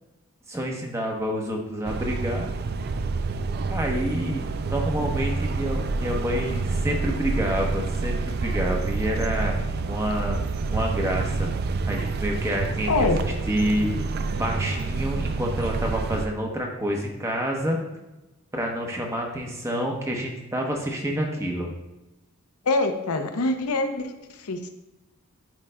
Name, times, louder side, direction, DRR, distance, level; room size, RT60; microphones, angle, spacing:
voice 1, 0.5-2.5 3.7-9.6 9.9-10.4 10.7-11.5 11.9-13.1 13.5-13.9 14.3-17.8 18.5-21.7, equal, 15° right, 0 dB, 0.8 m, -28 dB
sound 1, 1.8-16.3, right 3 dB, 45° right, 0.3 m, -28 dB
voice 2, 12.9-13.2 22.6-24.7, left 2 dB, 90° left, 7 dB, 0.7 m, -25 dB
10.5 x 4.8 x 2.2 m, 0.99 s
head